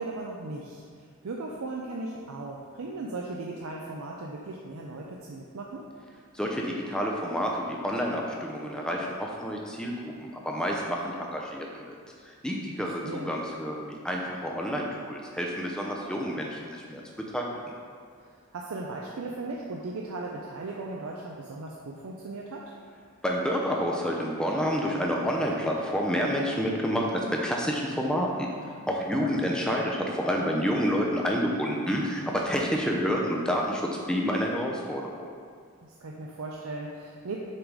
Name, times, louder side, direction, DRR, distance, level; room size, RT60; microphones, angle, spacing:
voice 1, 0.0-5.8 12.8-13.3 18.1-22.7 29.1-29.5 35.8-37.4, right 2 dB, 90° right, -1 dB, 0.5 m, -37 dB
voice 2, 6.3-12.0 12.2-17.0 17.3-17.6 23.2-35.3, equal, 5° left, -1 dB, 0.6 m, -29 dB
6.6 x 3.9 x 4.7 m, 2.1 s
head